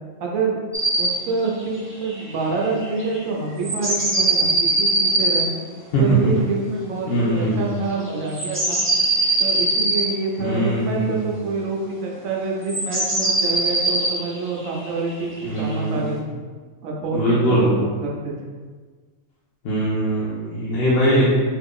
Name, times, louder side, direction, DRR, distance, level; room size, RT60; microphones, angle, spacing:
voice 1, 0.2-0.6 1.0-5.5 6.0-8.8 9.4-16.2 16.8-18.3, right 4 dB, 80° right, -1 dB, 1.1 m, -27 dB
sound 1, 0.7-1.1 1.4-1.5 1.8-1.9 2.0-3.2 3.6-5.5 8.0-10.1 12.7-15.7, right 2 dB, 10° right, 0.7 m, -21 dB
voice 2, 7.1-7.7 10.4-11.2 15.5-16.0 17.1-17.8 19.6-21.3, equal, 60° left, -7 dB, 0.7 m, -21 dB
2.8 x 2.5 x 3.6 m, 1.5 s
omnidirectional pair, 1.4 m